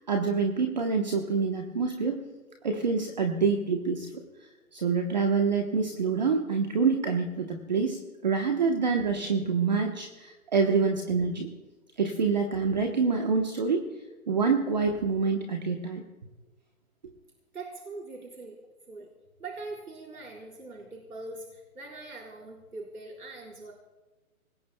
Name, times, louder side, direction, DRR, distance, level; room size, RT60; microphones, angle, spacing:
voice 1, 0.1-2.2 2.6-4.1 4.7-11.5 12.0-13.8 14.3-16.0, right 5 dB, 30° right, 3 dB, 1.1 m, -26 dB
voice 2, 17.5-18.6 18.9-19.1 19.4-23.7, right 3 dB, 85° right, -1 dB, 4.9 m, -42 dB
26.0 x 20.0 x 2.3 m, 1.2 s
hypercardioid pair, 170°, 44 cm